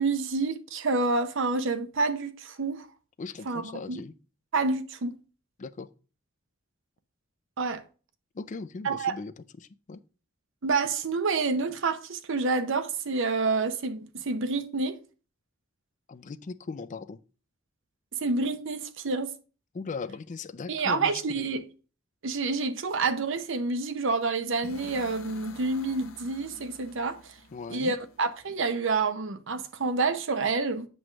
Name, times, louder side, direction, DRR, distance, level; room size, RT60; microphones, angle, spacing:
voice 1, 0.0-2.9 3.5-4.0 4.5-5.1 7.6-7.8 8.8-9.1 10.6-15.0 18.2-19.3 20.7-21.6 22.2-27.2 27.7-30.9, right 4 dB, 65° right, 0.7 m, -28 dB
voice 2, 3.2-4.1 5.6-5.9 8.3-10.0 16.1-17.2 19.7-21.5 27.5-28.0, left 4 dB, 40° left, 0.4 m, -39 dB
sound 1, 24.6-28.5, left 3 dB, 90° left, 0.8 m, -48 dB
7.8 x 3.2 x 6.1 m
head